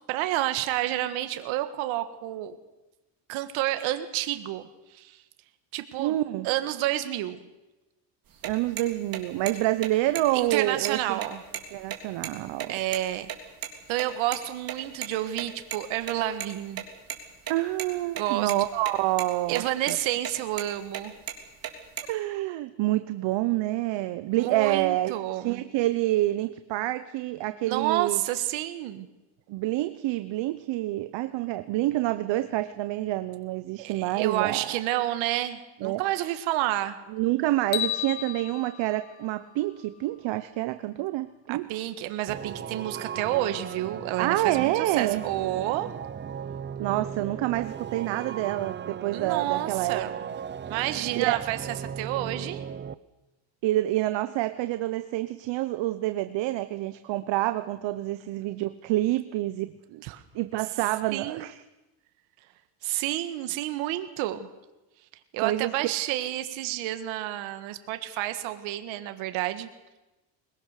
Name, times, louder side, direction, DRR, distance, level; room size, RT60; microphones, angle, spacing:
voice 1, 0.1-2.6 3.3-4.6 4.9-5.2 5.7-6.2 6.4-7.4 10.3-11.4 12.7-13.3 13.9-16.8 18.2-18.5 19.5-21.1 24.4-25.6 27.7-29.1 33.8-37.0 41.5-45.9 49.1-50.2 50.7-51.6 52.0-52.6 60.0-60.2 61.1-61.4 62.8-64.5 65.3-69.7, right 14 dB, 90° right, 9 dB, 1.7 m, -29 dB
voice 2, 6.0-6.5 8.4-11.2 11.7-12.7 17.5-20.0 22.1-25.1 25.4-28.2 29.5-34.8 35.8-36.3 37.1-41.9 44.2-45.2 46.8-50.0 51.0-51.4 53.6-60.0 60.3-61.6 65.4-65.7, right 16 dB, 70° right, 11 dB, 1.0 m, -27 dB
sound 1, 8.3-13.4 13.6-13.7 14.0-14.1 14.3-14.4 14.7-14.8 15.0-15.1 15.4-16.5 16.7-17.2 17.5-18.2 18.5-18.9 19.2-19.6 19.9-20.0 20.2-20.7 20.9-22.1, right 10 dB, 45° right, 3.4 m, -34 dB
sound 2, 37.7-40.0, left 13 dB, 75° left, 1.2 m, -34 dB
sound 3, 42.3-52.9, right 8 dB, 25° right, 0.7 m, -37 dB
21.5 x 21.5 x 6.6 m, 1.0 s
cardioid pair, 125°, 46 cm